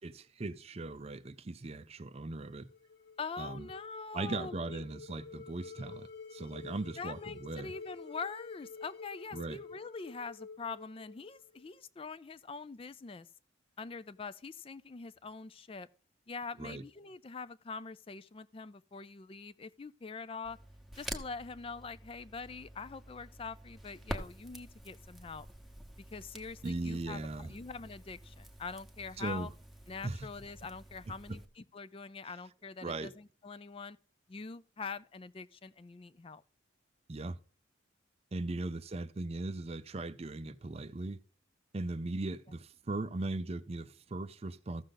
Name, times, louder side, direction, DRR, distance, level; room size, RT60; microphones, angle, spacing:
voice 1, 0.0-2.7 3.4-3.7 4.1-7.7 9.3-9.6 16.6-16.8 26.6-27.5 29.2-29.5 30.0-30.3 32.8-33.1 37.1-37.4 38.3-41.2 41.7-44.8, right 2 dB, 30° right, 0.5 m, -38 dB
sound 1, 2.5-11.7, left 4 dB, 60° left, 1.5 m, -50 dB
voice 2, 3.2-4.8 7.0-13.3 13.8-15.9 16.3-20.6 21.0-25.5 26.1-29.5 29.9-34.0 34.3-36.4 38.5-38.6, left 4 dB, 30° left, 0.4 m, -44 dB
Crackle, 20.4-31.5, equal, ahead, 1.0 m, -48 dB
14.5 x 6.6 x 3.8 m
head